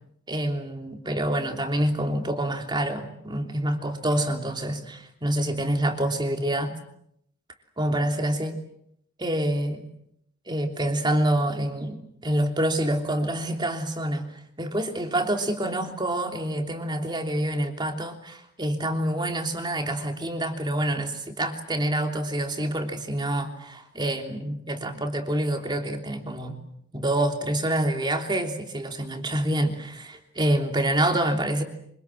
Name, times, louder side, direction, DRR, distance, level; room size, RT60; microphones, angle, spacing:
voice 1, 0.3-6.7 7.8-8.6 9.2-9.9 10.5-12.0 12.2-14.3 14.6-26.5 26.9-31.6, right 1 dB, 20° right, 4 dB, 3.2 m, -27 dB
26.0 x 26.0 x 7.7 m, 0.73 s
head